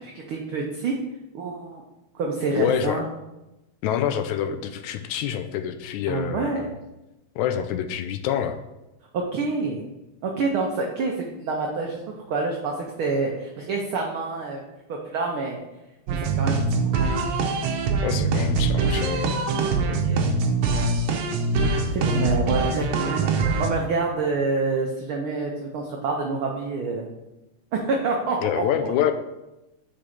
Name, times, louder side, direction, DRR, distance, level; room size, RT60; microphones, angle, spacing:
voice 1, 0.0-1.0 1.3-1.8 2.1-3.1 6.1-6.6 9.1-9.8 10.2-14.6 14.9-15.6 16.1-17.1 19.7-20.3 21.9-27.1 27.7-28.7, right 3 dB, 90° right, 0 dB, 1.1 m, -27 dB
voice 2, 2.5-3.0 3.8-6.8 7.4-8.6 18.0-19.4 28.4-29.1, left 9 dB, 80° left, 8 dB, 1.9 m, -26 dB
sound 1, 16.1-23.7, right 3 dB, 70° right, 1.7 m, -23 dB
5.2 x 5.0 x 5.9 m, 0.98 s
omnidirectional pair, 3.4 m